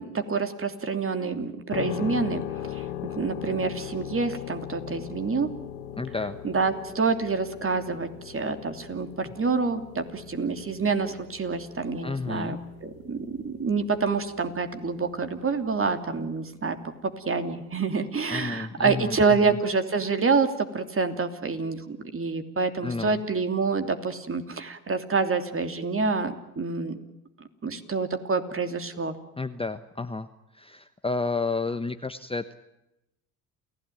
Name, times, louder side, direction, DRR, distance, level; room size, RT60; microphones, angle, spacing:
voice 1, 0.0-5.5 6.4-16.8 17.3-27.0 27.6-29.1, right 4 dB, 30° right, 8 dB, 2.9 m, -27 dB
sound 1, 1.7-16.4, left 11 dB, 80° left, 1.8 m, -40 dB
voice 2, 6.0-6.4 12.0-12.6 18.3-19.6 22.8-23.2 29.4-30.3 30.5-32.5, left 3 dB, 15° left, 10 dB, 1.1 m, -31 dB
28.5 x 16.5 x 9.2 m, 0.91 s
hypercardioid pair, 65°, 43 cm